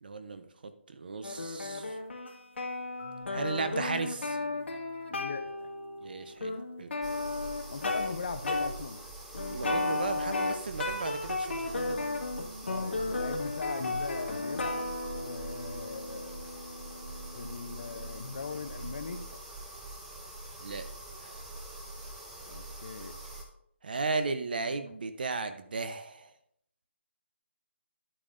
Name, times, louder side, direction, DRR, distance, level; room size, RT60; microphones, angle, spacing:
voice 1, 0.0-2.0 3.3-4.4 6.0-6.9 9.5-12.1 20.6-20.8 21.2-21.5 23.8-26.3, right 4 dB, 45° right, 10 dB, 0.8 m, -35 dB
sound 1, 1.2-8.1 8.4-8.7 9.3-18.4, left 3 dB, 65° left, 2.1 m, -35 dB
Marimba xylophone, 3.0-6.9, left 3 dB, 20° left, 3.9 m, -55 dB
voice 2, 5.1-5.7 7.7-9.0 12.7-16.3 17.3-19.4 22.5-23.2, left 4 dB, 40° left, 10 dB, 0.7 m, -39 dB
sound 2, 7.0-23.4, right 2 dB, 5° right, 0.5 m, -44 dB
11.0 x 8.6 x 2.6 m, 0.71 s
hypercardioid pair, 175°, 7 cm